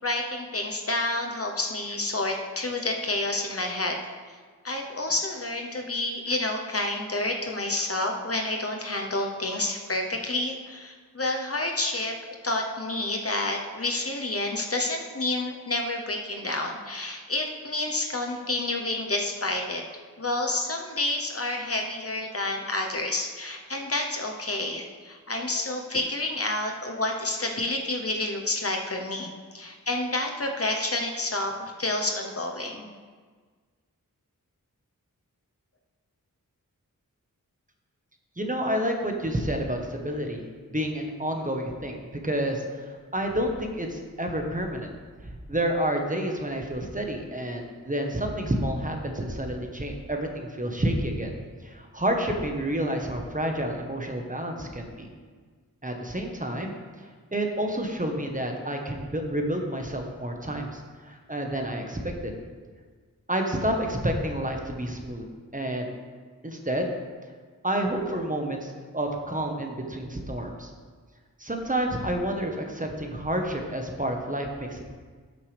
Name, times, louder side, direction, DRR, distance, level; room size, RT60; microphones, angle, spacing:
voice 1, 0.0-4.0 4.6-12.1 12.4-19.8 20.2-32.9, left 2 dB, 45° left, 2 dB, 1.0 m, -29 dB
voice 2, 38.4-44.9 45.5-51.3 51.6-55.1 55.8-62.3 63.3-65.2 65.5-65.9 66.4-66.9 67.6-70.7 71.4-74.9, right 1 dB, 25° right, 2 dB, 1.3 m, -29 dB
12.5 x 6.5 x 3.5 m, 1.5 s
wide cardioid pair, 50°, 34 cm